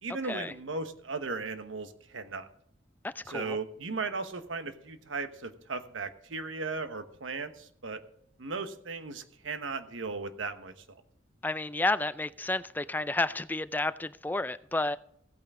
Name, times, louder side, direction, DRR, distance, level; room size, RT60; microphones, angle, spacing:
voice 1, 0.0-2.5 3.2-8.0 8.4-10.7, right 4 dB, 90° right, 1.1 m, -36 dB
voice 2, 3.0-3.6 11.4-15.0, left 2 dB, 10° left, 0.4 m, -31 dB
16.0 x 8.9 x 3.7 m
head